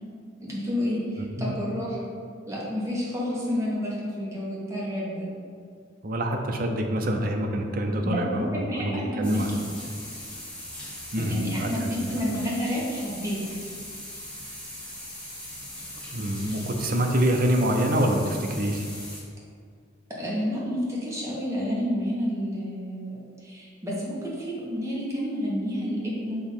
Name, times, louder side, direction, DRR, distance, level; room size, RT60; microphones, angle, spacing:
voice 1, 0.4-2.1 2.5-5.3 8.0-9.6 11.2-13.4 20.2-26.4, equal, 15° right, -6 dB, 1.4 m, -30 dB
voice 2, 1.2-1.5 6.0-9.6 11.1-12.3 16.1-18.8, right 1 dB, 50° right, 3 dB, 0.6 m, -26 dB
sound 1, 9.2-19.2, left 1 dB, 5° left, 1.3 m, -40 dB
6.4 x 2.9 x 5.6 m, 2.1 s
head